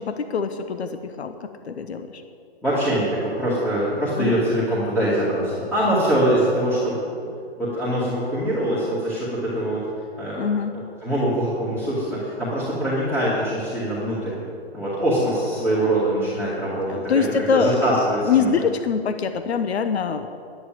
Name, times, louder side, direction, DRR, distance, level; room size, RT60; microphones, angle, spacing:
voice 1, 0.0-2.2 4.2-4.4 10.4-10.7 16.8-18.0 18.2-20.3, left 6 dB, 80° left, 9 dB, 1.0 m, -24 dB
voice 2, 2.6-7.3 7.6-9.8 10.2-10.4 11.0-14.3 14.7-18.5, right 1 dB, 5° left, -11 dB, 2.2 m, -23 dB
11.0 x 10.0 x 7.6 m, 2.5 s
hypercardioid pair, 155°, 32 cm